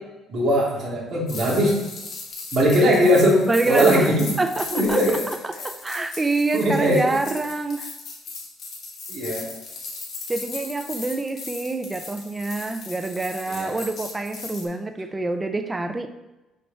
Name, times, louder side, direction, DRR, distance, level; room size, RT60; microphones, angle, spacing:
voice 1, 0.3-1.8 2.5-4.3 4.7-5.2 6.5-7.2 9.1-9.5 13.5-13.8, equal, 40° right, -5 dB, 2.4 m, -20 dB
sound 1, 1.3-14.6, left 3 dB, 45° left, 1.7 m, -37 dB
voice 2, 3.5-4.1 4.4-5.0 5.3-7.9 10.3-16.1, right 2 dB, 15° right, 7 dB, 0.4 m, -26 dB
6.5 x 4.4 x 5.4 m, 1.0 s
cardioid pair, 160°, 0 cm